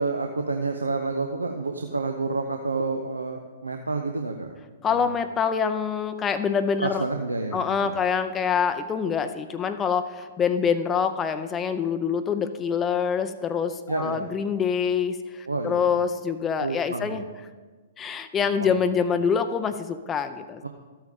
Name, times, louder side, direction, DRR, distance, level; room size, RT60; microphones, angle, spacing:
voice 1, 0.0-4.6 4.9-5.1 6.8-8.0 13.9-14.3 15.5-16.0 16.6-17.2 18.6-18.7 20.6-20.7, right 3 dB, 85° right, 4 dB, 0.6 m, -29 dB
voice 2, 4.8-7.0 7.5-17.2 18.0-20.6, left 6 dB, 20° left, 9 dB, 0.5 m, -25 dB
13.0 x 9.0 x 3.6 m, 1.4 s
figure-of-eight pair, 115°, 0 cm